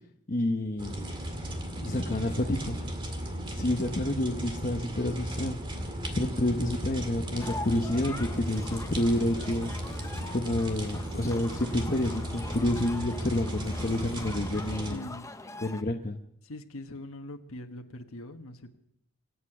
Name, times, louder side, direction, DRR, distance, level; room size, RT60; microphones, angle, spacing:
voice 1, 0.3-1.1 1.8-2.8 3.5-5.6 6.2-9.7 10.3-15.1 15.6-16.2, left 1 dB, 35° left, 2 dB, 0.9 m, -29 dB
sound 1, 0.8-15.0, equal, 20° right, 2.1 m, -36 dB
voice 2, 2.6-3.0 14.9-15.3 16.4-18.8, left 1 dB, 75° left, 4 dB, 1.4 m, -43 dB
sound 2, 7.4-15.8, left 2 dB, 15° left, 0.5 m, -43 dB
25.5 x 8.5 x 6.0 m, 0.76 s
head